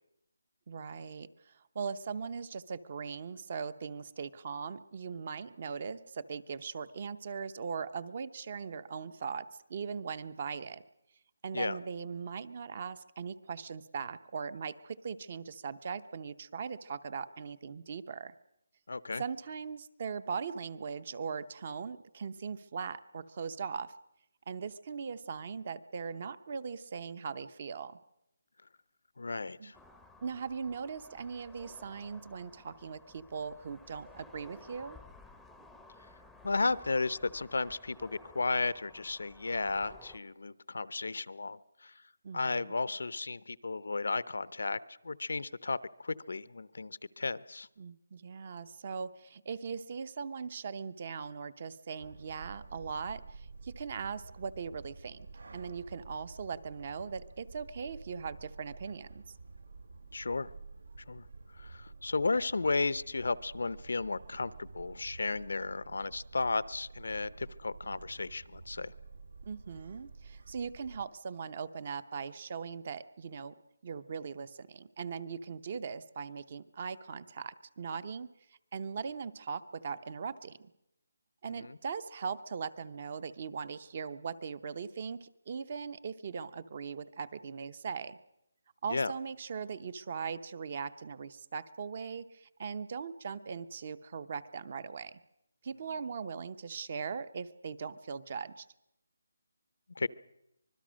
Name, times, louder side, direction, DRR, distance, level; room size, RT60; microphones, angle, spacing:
voice 1, 0.7-10.8 11.4-18.3 19.2-23.9 24.5-28.0 29.6-29.7 30.2-35.0 42.2-42.7 47.8-55.3 55.5-59.2 69.5-73.5 73.8-78.3 78.7-80.7 81.4-88.2 88.8-95.2 95.6-98.7, right 6 dB, 30° right, 16 dB, 0.7 m, -40 dB
voice 2, 18.9-19.2 29.2-29.8 36.4-41.9 42.3-44.8 45.0-47.7 60.1-60.5 61.1-61.2 61.6-68.9 81.6-81.8 88.9-89.1 100.0-100.1, left 3 dB, 80° left, 17 dB, 0.8 m, -34 dB
sound 1, 29.7-40.2, left 3 dB, ahead, 0.7 m, -56 dB
sound 2, 52.0-71.0, right 4 dB, 85° right, 2.2 m, -50 dB
25.0 x 20.5 x 6.3 m, 0.83 s
hypercardioid pair, 175°, 0 cm